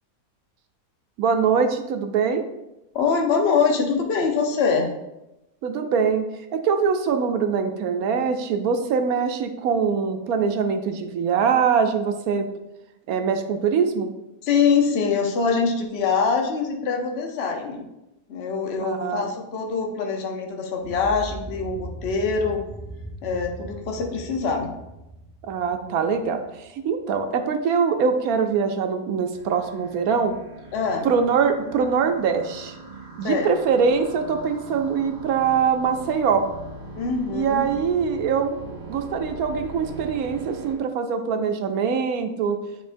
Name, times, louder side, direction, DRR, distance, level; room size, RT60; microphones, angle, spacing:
voice 1, 1.2-2.4 5.6-6.2 6.5-12.5 13.1-14.1 18.8-19.3 25.4-30.3 31.0-32.7 33.2-36.4 37.3-38.6 38.9-42.6, right 6 dB, 75° right, 6 dB, 1.1 m, -23 dB
voice 2, 2.9-4.9 14.4-17.8 18.3-22.6 23.2-24.7 30.7-31.1 33.2-33.6 37.0-37.7, left 5 dB, 50° left, 2 dB, 1.0 m, -24 dB
sound 1, 20.8-26.9, right 1 dB, 20° right, 0.5 m, -39 dB
sound 2, 29.3-40.7, right 3 dB, 45° right, 1.7 m, -41 dB
9.2 x 4.4 x 2.6 m, 0.92 s
omnidirectional pair, 1.6 m